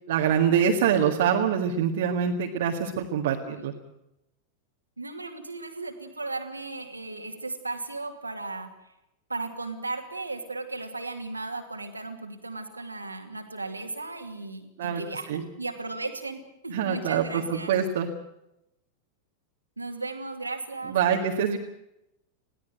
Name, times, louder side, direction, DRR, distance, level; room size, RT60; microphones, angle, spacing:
voice 1, 0.1-3.7 14.8-15.0 15.3-15.4 16.7-18.1 20.9-21.6, right 8 dB, 60° right, 0 dB, 2.0 m, -25 dB
voice 2, 5.0-8.7 9.3-17.7 19.8-21.0, right 3 dB, 85° right, 5 dB, 2.5 m, -36 dB
22.5 x 16.5 x 7.9 m, 0.86 s
figure-of-eight pair, 90°, 0 cm